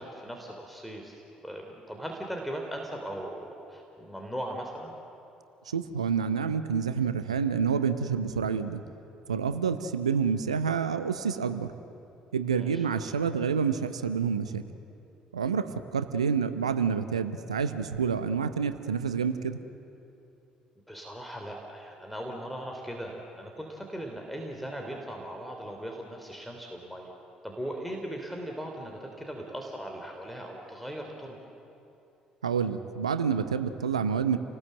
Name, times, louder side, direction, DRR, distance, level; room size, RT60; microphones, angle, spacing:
voice 1, 0.0-4.9 12.5-12.8 20.9-27.1 27.4-31.4, right 1 dB, ahead, 1 dB, 3.3 m, -39 dB
voice 2, 5.7-8.8 9.3-11.7 12.3-14.6 15.3-19.6 32.4-34.4, right 6 dB, 85° right, 12 dB, 0.8 m, -28 dB
28.5 x 19.5 x 7.8 m, 2.8 s
figure-of-eight pair, 50°, 3 cm